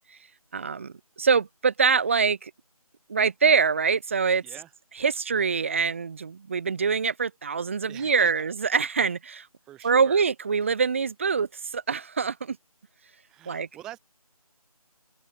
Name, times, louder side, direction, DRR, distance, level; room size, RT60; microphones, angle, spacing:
voice 1, 0.5-2.5 3.1-4.4 5.0-9.5 9.8-12.6 13.5-13.7, right 5 dB, 20° right, 2.0 m, -24 dB
voice 2, 7.9-8.5 9.6-10.3 13.3-14.0, right 13 dB, 5° right, 1.4 m, -44 dB
figure-of-eight pair, 175°, 19 cm